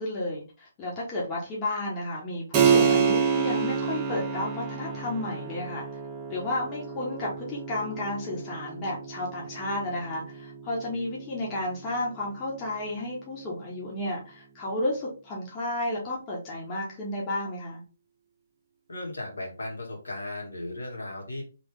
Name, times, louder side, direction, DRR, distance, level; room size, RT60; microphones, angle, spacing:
voice 1, 0.0-5.9 6.3-17.8, left 1 dB, 20° left, -4 dB, 1.3 m, -32 dB
Keyboard (musical), 2.5-12.7, right 6 dB, 20° right, 0.7 m, -29 dB
voice 2, 18.9-21.4, left 2 dB, 70° left, -2 dB, 2.1 m, -36 dB
3.4 x 3.4 x 3.6 m, 0.34 s
figure-of-eight pair, 135°, 0 cm